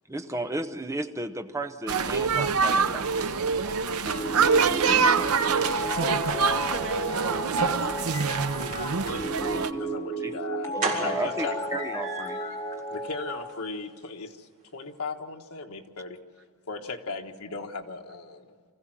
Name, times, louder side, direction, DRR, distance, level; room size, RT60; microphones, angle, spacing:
voice 1, 0.1-4.2 4.8-6.0 9.4-10.0 10.2-10.3 10.7-12.4, right 1 dB, 15° right, 8 dB, 0.9 m, -35 dB
sound 1, 1.9-9.7, right 5 dB, 85° right, 0.8 m, -25 dB
sound 2, 4.1-13.4, right 1 dB, 15° left, 2.8 m, -33 dB
voice 2, 5.7-8.1, right 2 dB, 60° right, 5 dB, 1.5 m, -39 dB
voice 3, 9.3-11.7 12.9-16.2 16.7-18.5, left 3 dB, 90° left, 3 dB, 1.5 m, -37 dB
sound 3, 10.1-10.2 10.8-12.6 12.9-13.0 13.4-13.5 13.8-13.9, right 3 dB, 40° right, 4.1 m, -33 dB
25.0 x 15.0 x 7.6 m, 2.1 s
head